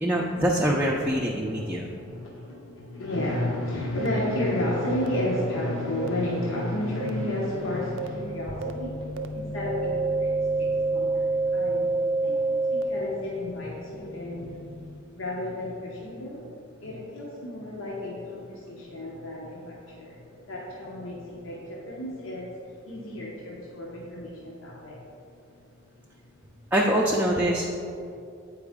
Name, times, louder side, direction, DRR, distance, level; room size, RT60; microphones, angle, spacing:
voice 1, 0.0-1.9 26.7-27.7, right 1 dB, 10° right, -3 dB, 0.4 m, -24 dB
voice 2, 1.9-11.9 12.2-14.7 15.1-16.4 16.8-20.2 20.5-22.5 22.8-25.0, left 1 dB, 85° left, -4 dB, 0.9 m, -32 dB
sound 1, 4.0-4.1 5.0-5.1 6.0-6.1 7.0-7.1 8.0-8.1 8.6-8.7 9.2-9.3 9.7-12.8, right 3 dB, 75° right, 0.4 m, -26 dB
sound 2, 7.1-15.0, left 2 dB, 55° left, 0.7 m, -41 dB
8.1 x 4.8 x 3.6 m, 2.6 s
head